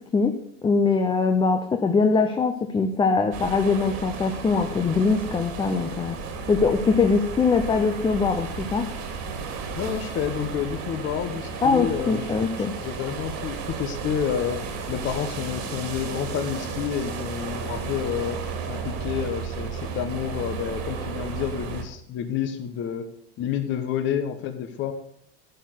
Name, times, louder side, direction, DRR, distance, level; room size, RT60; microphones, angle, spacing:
voice 1, 0.0-6.2 6.5-8.9 11.6-12.8, left 4 dB, 15° left, 5 dB, 0.7 m, -22 dB
sound 1, 3.3-21.8, right 5 dB, 55° right, 2.4 m, -33 dB
voice 2, 9.7-14.6 14.9-18.4 18.7-23.1 23.4-24.9, left 8 dB, 40° left, 7 dB, 1.1 m, -29 dB
11.5 x 4.6 x 8.2 m, 0.72 s
supercardioid pair, 135°, 30 cm